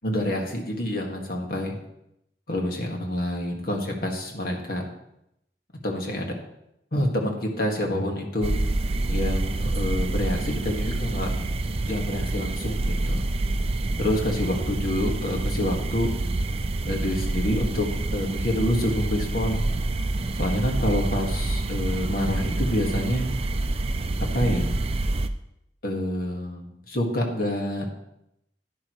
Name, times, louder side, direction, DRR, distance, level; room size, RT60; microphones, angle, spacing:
voice 1, 0.0-1.8 2.5-4.9 5.8-6.3 6.9-8.5 9.1-11.3 11.8-13.2 14.0-16.1 16.8-19.8 20.4-23.3 24.2-24.7 25.8-27.9, left 1 dB, 55° left, 1 dB, 1.8 m, -27 dB
sound 1, 8.4-25.3, right 2 dB, 35° right, 0.5 m, -27 dB
11.0 x 10.0 x 3.1 m, 0.82 s
head